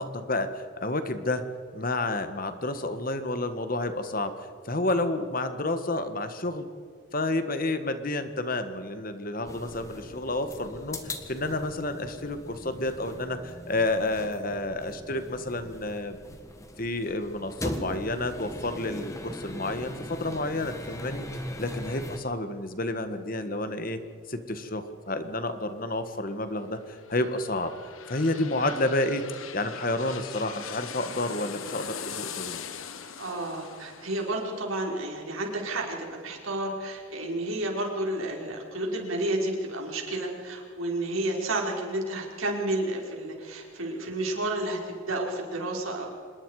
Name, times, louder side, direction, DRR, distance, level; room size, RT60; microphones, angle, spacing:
voice 1, 0.0-1.4 1.7-6.7 7.1-16.4 16.8-21.3 21.6-24.0 24.3-27.7 28.1-29.2 29.5-32.6, left 2 dB, 45° left, 9 dB, 1.5 m, -30 dB
sound 1, 9.4-22.2, left 1 dB, 15° left, 1.6 m, -40 dB
sound 2, 26.8-36.4 36.8-36.9, left 7 dB, 85° left, 1.4 m, -41 dB
voice 2, 33.2-46.1, right 1 dB, 85° right, 0 dB, 4.9 m, -31 dB
26.0 x 21.5 x 4.9 m, 2.2 s
head